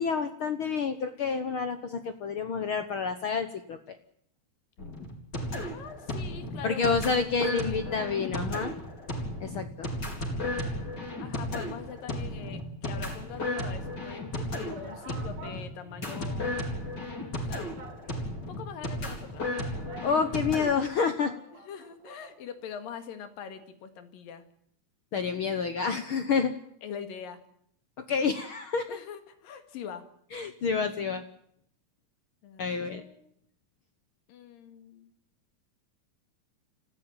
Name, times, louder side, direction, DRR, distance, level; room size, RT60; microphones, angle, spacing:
voice 1, 0.0-4.0 6.6-8.7 9.4-9.9 20.0-21.3 25.1-26.5 28.1-28.9 30.3-31.2 32.6-33.0, left 5 dB, 65° left, 9 dB, 1.3 m, -29 dB
sound 1, 4.8-20.7, left 1 dB, 30° left, 4.6 m, -34 dB
voice 2, 5.6-8.1 11.2-16.6 17.4-17.8 18.2-19.7 21.5-24.4 26.8-27.4 28.9-30.0 32.4-33.3 34.3-35.1, left 7 dB, 85° left, 10 dB, 3.6 m, -43 dB
sound 2, 12.9-13.9 14.3-14.4 14.7-16.7 17.0-17.1 17.8-18.5 19.2-22.4 22.7-22.8, right 3 dB, 70° right, 4.4 m, -50 dB
25.5 x 15.5 x 9.0 m, 0.70 s
omnidirectional pair, 3.9 m